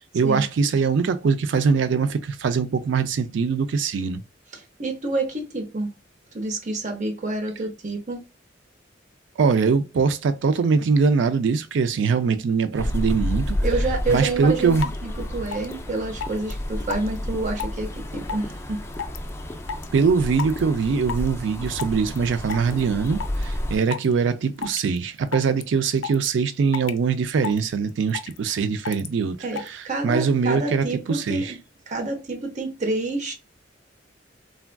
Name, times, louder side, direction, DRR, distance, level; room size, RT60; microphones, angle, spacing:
voice 1, 0.0-4.2 9.4-13.6 14.1-14.8 19.9-29.4 30.0-31.5, right 5 dB, 70° right, 0.4 m, -22 dB
voice 2, 4.5-5.9 6.3-8.2 13.6-18.8 29.4-31.6 31.9-33.3, right 2 dB, 40° right, 0.7 m, -28 dB
sound 1, 12.8-23.8, left 1 dB, 15° left, 0.4 m, -30 dB
sound 2, 14.3-14.4 14.8-15.0 15.5-15.7 16.2-16.5 16.9-17.2 17.6-17.8 18.3-18.5 18.9-19.3 19.7-19.9 20.4-20.6 21.1-21.3 21.8-22.2 22.5-22.7 23.1-23.4 23.9-24.1 24.6-25.0 25.3-25.6 26.0-26.3 26.7-27.0 27.4-27.6 27.9-28.4 28.8-29.1 29.6-29.7, left 6 dB, 80° left, 0.4 m, -30 dB
3.4 x 2.3 x 2.2 m
head